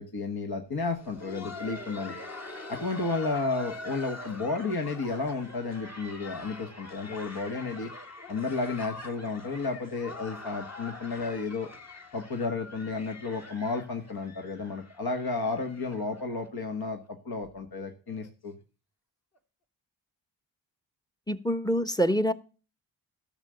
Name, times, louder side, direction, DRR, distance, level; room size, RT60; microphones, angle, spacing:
voice 1, 0.0-2.2 2.7-7.9 8.3-11.7 12.1-18.6, left 3 dB, 50° left, 4 dB, 1.7 m, -32 dB
Laughter, 0.8-16.5 16.7-16.8 17.4-17.5 18.1-18.3 19.4-19.5, left 2 dB, 35° left, 2.0 m, -44 dB
voice 2, 21.3-22.3, equal, 10° left, 14 dB, 1.1 m, -25 dB
12.0 x 6.6 x 6.9 m, 0.36 s
supercardioid pair, 45°, 47 cm